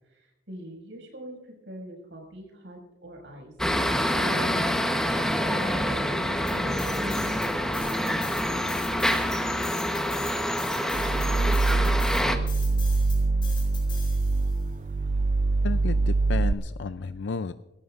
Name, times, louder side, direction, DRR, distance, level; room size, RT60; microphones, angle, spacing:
voice 1, 0.0-3.8 4.1-4.7 5.5-7.9, equal, 75° right, 1 dB, 6.2 m, -41 dB
sound 1, 3.6-12.4, equal, 5° left, 1.1 m, -26 dB
sound 2, 6.5-7.5 7.7-14.6, left 6 dB, 25° left, 5.8 m, -42 dB
sound 3, 10.9-16.5, right 3 dB, 40° right, 0.5 m, -24 dB
voice 2, 15.6-17.5, left 4 dB, 65° left, 11 dB, 0.5 m, -32 dB
27.5 x 14.0 x 2.6 m, 0.99 s
head